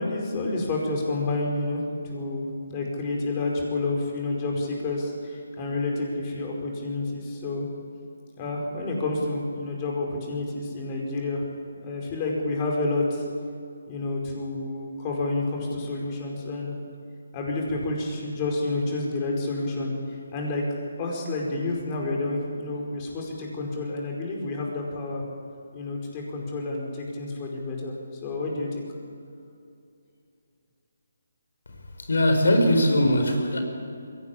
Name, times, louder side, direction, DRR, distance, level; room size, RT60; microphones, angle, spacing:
voice 1, 0.0-7.7 8.4-11.5 11.8-13.2 13.9-16.7 17.3-20.6 21.0-25.2 25.7-27.9 28.2-28.8, left 2 dB, 25° left, -1 dB, 5.1 m, -29 dB
voice 2, 32.0-33.6, left 1 dB, 80° left, 4 dB, 4.9 m, -20 dB
23.0 x 17.5 x 8.6 m, 2.5 s
hypercardioid pair, 165°, 0 cm